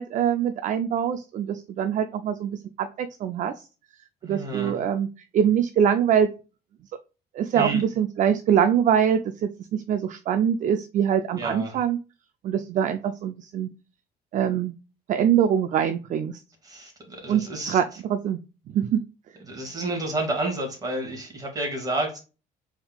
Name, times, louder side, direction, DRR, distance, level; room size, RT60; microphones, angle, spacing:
voice 1, 0.0-3.5 4.2-5.1 5.3-6.3 7.3-12.0 12.4-13.7 14.3-14.7 15.1-16.4 17.3-17.8 18.1-18.4 18.7-19.0, right 8 dB, 50° right, 9 dB, 0.4 m, -23 dB
voice 2, 4.2-4.8 7.5-7.8 11.4-11.8 16.6-17.8 19.5-22.2, right 2 dB, 20° right, 1 dB, 1.9 m, -30 dB
4.4 x 3.6 x 2.3 m, 0.32 s
cardioid pair, 110°, 17 cm